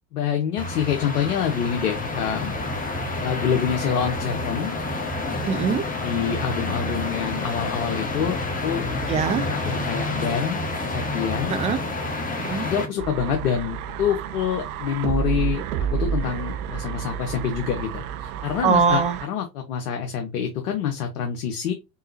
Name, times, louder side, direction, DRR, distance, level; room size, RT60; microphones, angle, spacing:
voice 1, 0.1-2.6 3.2-4.8 6.0-8.9 9.5-10.6 10.9-11.5 12.6-21.7, left 8 dB, 65° left, 1.0 m, -26 dB
sound 1, 0.6-12.9, left 2 dB, 15° left, 1.4 m, -29 dB
voice 2, 5.4-5.9 9.1-9.5 11.5-11.8 12.4-12.7 18.6-19.2, right 6 dB, 15° right, 0.3 m, -22 dB
sound 2, 13.0-19.3, right 7 dB, 65° right, 0.6 m, -30 dB
3.9 x 3.7 x 2.8 m
figure-of-eight pair, 70°, 48 cm